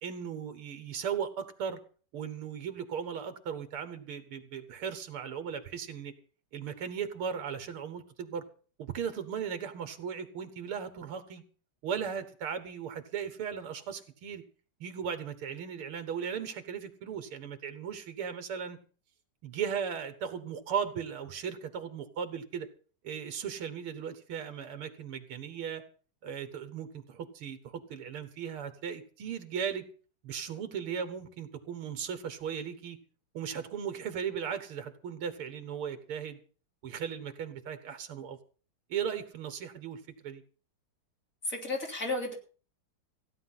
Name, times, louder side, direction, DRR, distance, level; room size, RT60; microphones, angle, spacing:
voice 1, 0.0-1.8 2.1-6.1 6.5-8.4 8.8-11.4 11.8-14.4 14.8-18.8 19.4-22.7 23.0-25.8 26.2-29.8 30.2-33.0 33.3-36.4 36.8-38.4 38.9-40.4, right 7 dB, 85° right, 10 dB, 2.3 m, -37 dB
voice 2, 41.5-42.3, left 2 dB, 35° left, 1 dB, 3.7 m, -33 dB
16.0 x 10.5 x 5.7 m, 0.40 s
omnidirectional pair, 2.4 m